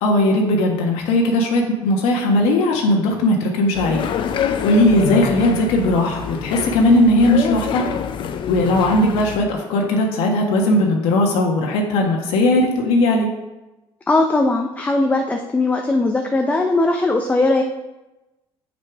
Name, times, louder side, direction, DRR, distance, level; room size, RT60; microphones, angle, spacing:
voice 1, 0.0-4.1 4.4-7.9 8.5-13.3, left 1 dB, 85° left, 0 dB, 1.3 m, -18 dB
sound 1, 3.7-9.4, left 7 dB, 55° left, 0.6 m, -26 dB
voice 2, 14.1-17.6, left 2 dB, 15° left, 3 dB, 0.6 m, -19 dB
6.7 x 6.4 x 4.7 m, 1.0 s
cardioid pair, 115°, 10 cm